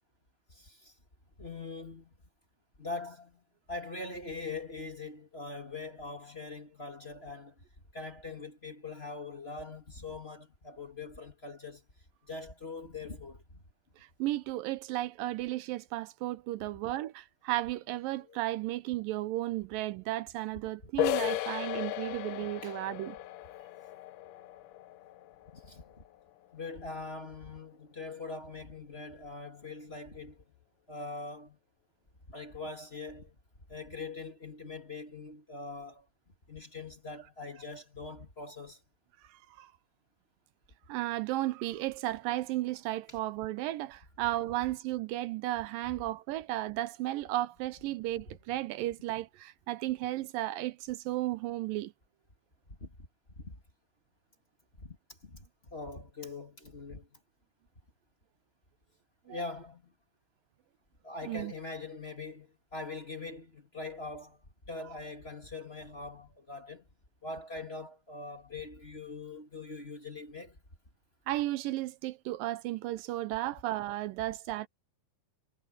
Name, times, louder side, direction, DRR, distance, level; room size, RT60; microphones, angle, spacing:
voice 1, 0.5-0.9 1.4-2.1 2.8-7.6 7.9-11.9 12.2-13.6 16.6-17.0 18.1-18.4 22.6-22.8 25.5-26.0 26.5-30.4 30.9-31.6 32.3-33.4 33.7-36.1 36.5-38.8 43.1-43.2 45.9-46.0 48.3-48.4 52.7-53.1 53.4-53.6 54.8-57.2 59.3-59.9 61.0-66.8 67.2-70.6 74.2-74.3, left 3 dB, 20° left, 2.6 m, -43 dB
voice 2, 14.2-23.2 39.6-39.7 40.9-51.9 59.3-59.4 61.3-61.5 71.3-74.7, right 16 dB, 85° right, 2.5 m, -34 dB
sound 1, 21.0-26.5, left 14 dB, 80° left, 1.6 m, -36 dB
omnidirectional pair, 3.9 m